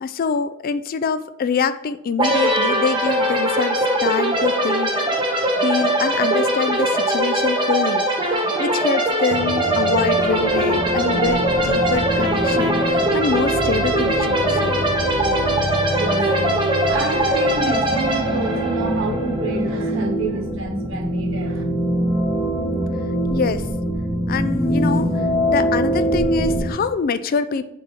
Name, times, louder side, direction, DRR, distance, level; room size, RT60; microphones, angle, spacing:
voice 1, 0.0-4.9 5.6-14.8 23.3-23.7 24.3-27.7, left 5 dB, 45° left, 12 dB, 0.3 m, -25 dB
sound 1, 2.2-19.8, right 1 dB, 25° right, 1.1 m, -21 dB
sound 2, 9.3-26.7, equal, ahead, 0.8 m, -24 dB
voice 2, 15.9-21.6, right 2 dB, 65° right, 2 dB, 1.4 m, -28 dB
5.3 x 4.4 x 5.2 m, 0.84 s
head